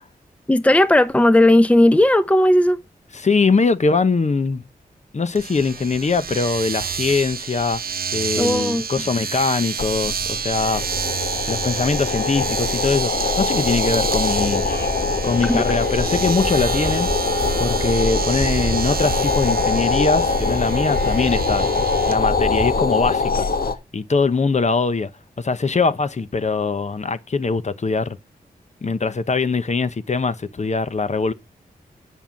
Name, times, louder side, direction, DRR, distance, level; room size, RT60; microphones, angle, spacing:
voice 1, 0.5-2.8 8.4-8.8 15.5-15.6, left 1 dB, 10° left, 0.7 m, -15 dB
voice 2, 3.1-4.6 5.1-7.8 8.1-10.8 11.5-14.7 15.2-17.1 17.6-21.7 22.1-23.5 23.9-25.1 25.4-28.2 28.8-31.3, left 4 dB, 50° left, 0.9 m, -22 dB
Domestic sounds home sounds, 5.3-22.2, right 7 dB, 70° right, 0.8 m, -29 dB
sound 1, 9.8-23.8, left 4 dB, 70° left, 1.3 m, -23 dB
sound 2, 14.3-22.8, right 3 dB, 35° right, 1.3 m, -31 dB
9.9 x 5.6 x 6.0 m
cardioid pair, 65°, 16 cm